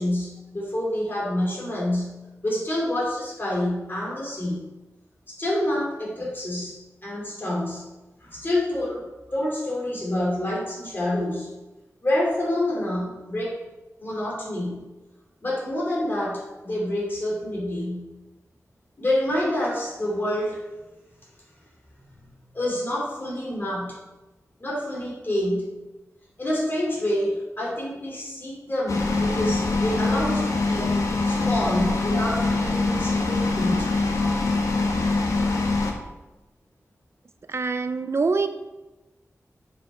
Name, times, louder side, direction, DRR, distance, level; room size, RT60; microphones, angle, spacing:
voice 1, 0.0-2.1 2.4-4.7 5.3-7.8 8.2-11.5 12.0-13.6 14.0-14.8 15.4-18.0 19.0-20.6 22.1-24.0 24.6-25.7 26.4-30.9 31.3-33.9, left 1 dB, 40° left, -4 dB, 3.0 m, -27 dB
sound 1, 28.9-35.9, left 3 dB, 70° left, 1.2 m, -23 dB
voice 2, 37.5-38.5, right 4 dB, 50° right, 9 dB, 0.4 m, -25 dB
7.2 x 5.4 x 5.7 m, 1.1 s
wide cardioid pair, 105°, 6 cm